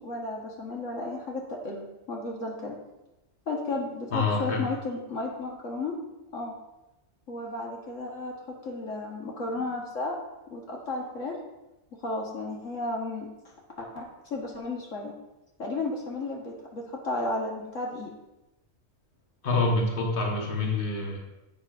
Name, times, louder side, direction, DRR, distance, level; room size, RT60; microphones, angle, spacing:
voice 1, 0.0-2.8 3.5-5.9 6.3-6.5 7.3-10.2 10.5-11.4 11.9-13.3 13.8-15.1 15.6-18.1, left 2 dB, 70° left, -1 dB, 1.7 m, -33 dB
voice 2, 4.1-4.6 19.4-21.2, left 3 dB, 40° left, -1 dB, 1.5 m, -26 dB
11.0 x 7.8 x 2.5 m, 0.99 s
omnidirectional pair, 1.4 m